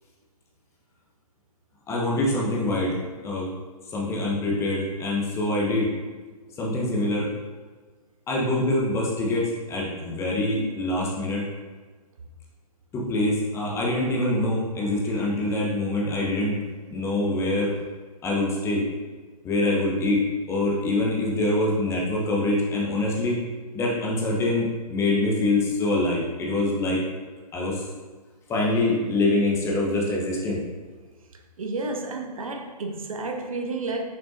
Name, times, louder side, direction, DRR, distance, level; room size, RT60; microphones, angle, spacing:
voice 1, 1.9-3.0 3.2-3.5 3.9-5.9 6.6-7.3 8.3-11.5 12.9-16.6 16.9-17.7 18.2-18.8 19.4-20.2 20.5-23.4 23.7-27.0 27.5-27.8 28.5-30.6, left 2 dB, 15° left, -3 dB, 1.0 m, -24 dB
voice 2, 31.6-34.0, right 3 dB, 55° right, 3 dB, 0.8 m, -31 dB
7.1 x 5.7 x 2.7 m, 1.4 s
figure-of-eight pair, 120°, 21 cm